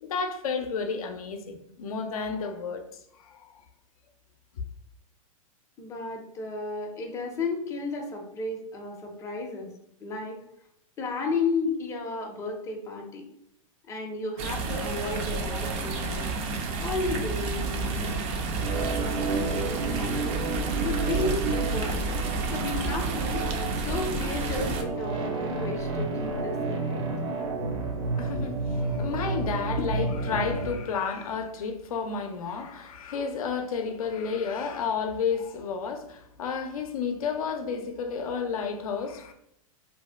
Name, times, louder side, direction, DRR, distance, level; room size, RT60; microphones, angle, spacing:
voice 1, 0.0-2.8 3.1-3.6 4.6-4.7 28.2-39.3, left 5 dB, 80° left, 0.5 m, -31 dB
voice 2, 5.8-9.7 10.0-10.4 11.0-13.3 13.9-16.2 16.8-18.2 18.5-20.4 20.8-22.2 22.5-23.5 23.8-27.0, left 3 dB, 15° left, 0.5 m, -33 dB
sound 1, 14.4-24.8, right 3 dB, 35° right, 0.4 m, -30 dB
Organ, 18.6-30.8, right 4 dB, 90° right, 0.6 m, -31 dB
sound 2, 24.9-29.0, equal, 60° right, 0.8 m, -39 dB
2.6 x 2.1 x 3.3 m
hypercardioid pair, 120°, 18 cm